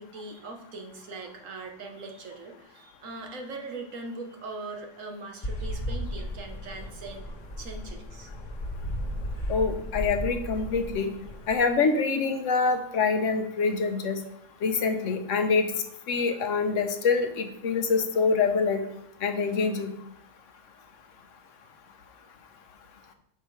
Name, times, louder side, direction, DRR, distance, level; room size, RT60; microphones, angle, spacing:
voice 1, 0.0-7.3 7.6-8.3, right 3 dB, 85° right, 3 dB, 1.5 m, -40 dB
sound 1, 5.4-11.5, equal, 35° left, 1.3 m, -35 dB
voice 2, 9.5-11.1 11.5-14.2 14.6-15.7 16.1-18.8 19.2-19.9, left 4 dB, 75° left, 6 dB, 1.2 m, -25 dB
8.5 x 5.8 x 3.2 m, 0.75 s
omnidirectional pair, 1.3 m